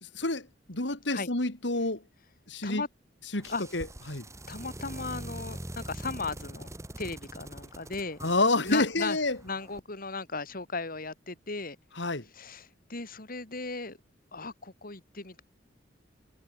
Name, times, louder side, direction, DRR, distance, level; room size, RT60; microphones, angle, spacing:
voice 1, 0.0-2.0 2.5-2.8 3.3-4.2 8.2-9.4 11.9-12.2, left 2 dB, 70° left, 3.2 m, -29 dB
sound 1, 3.3-9.8, right 1 dB, 15° right, 2.5 m, -43 dB
voice 2, 4.5-6.7 7.0-8.2 8.7-9.2 9.4-11.8 12.3-14.0 14.3-15.4, left 3 dB, 50° left, 4.1 m, -36 dB
head